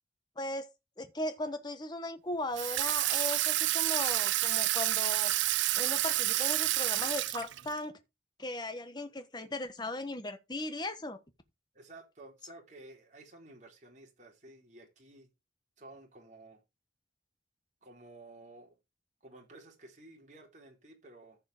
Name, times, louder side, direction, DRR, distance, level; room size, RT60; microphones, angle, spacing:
voice 1, 0.4-0.7 1.0-5.3 5.7-8.0 8.4-11.2, left 2 dB, 25° left, 1.2 m, -37 dB
Water tap faucet / Sink (filling or washing), 2.6-7.8, right 16 dB, 80° right, 0.5 m, -29 dB
voice 2, 11.7-15.3 15.8-16.6 17.8-18.8 19.2-21.4, right 2 dB, 40° right, 3.9 m, -53 dB
14.5 x 5.0 x 5.0 m
head